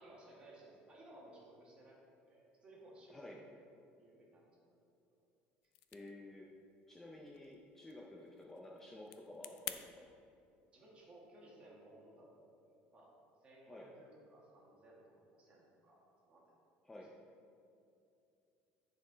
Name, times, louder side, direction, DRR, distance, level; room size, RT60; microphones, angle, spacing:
voice 1, 0.0-2.0 2.3-3.4 4.0-4.6 10.7-13.1 13.4-16.0 16.2-16.4, right 1 dB, 25° right, -4 dB, 1.7 m, -59 dB
sound 1, 5.6-9.8, left 14 dB, 75° left, 0.4 m, -52 dB
voice 2, 5.9-6.5 6.9-9.9 13.7-13.9 16.8-17.1, left 1 dB, 10° left, -2 dB, 0.5 m, -52 dB
10.0 x 4.4 x 3.9 m, 2.6 s
cardioid pair, 160°, 4 cm